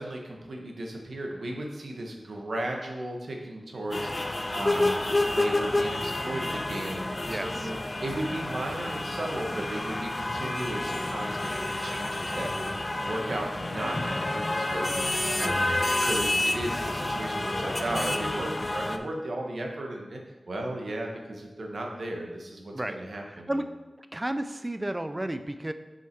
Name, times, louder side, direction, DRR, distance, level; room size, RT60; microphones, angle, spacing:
voice 1, 0.0-15.6 16.0-20.2 20.5-23.6, right 1 dB, 75° right, 1 dB, 1.2 m, -35 dB
sound 1, 3.9-19.0, left 2 dB, 35° left, 0.5 m, -29 dB
voice 2, 24.1-25.7, right 1 dB, 20° right, 10 dB, 0.5 m, -31 dB
5.8 x 5.7 x 4.6 m, 1.2 s
wide cardioid pair, 65°, 0 cm